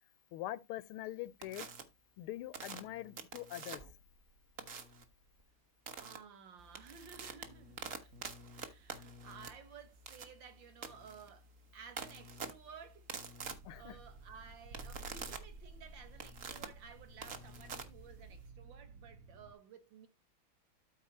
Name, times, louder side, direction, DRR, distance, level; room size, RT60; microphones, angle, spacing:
voice 1, 0.3-1.7 2.2-3.8 13.6-14.0, left 15 dB, 85° left, 1.6 m, -43 dB
sound 1, 1.4-1.8 2.5-4.0 4.6-5.0 5.9-6.2 6.6-18.5, right 5 dB, 45° right, 1.4 m, -47 dB
voice 2, 6.0-8.1 8.6-13.1 13.7-20.1, right 6 dB, 60° right, 2.0 m, -55 dB
sound 2, 13.4-19.5, right 3 dB, 80° right, 1.9 m, -54 dB
13.0 x 4.5 x 4.2 m
omnidirectional pair, 2.3 m